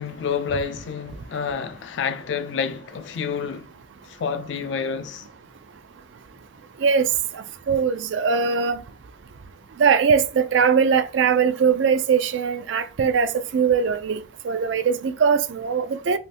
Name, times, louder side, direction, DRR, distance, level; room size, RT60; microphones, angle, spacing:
voice 1, 0.0-3.7 4.0-5.3, left 6 dB, 70° left, 0.4 m, -28 dB
voice 2, 7.3-8.8 9.8-16.2, right 6 dB, 75° right, 0.4 m, -21 dB
3.4 x 2.5 x 2.7 m
head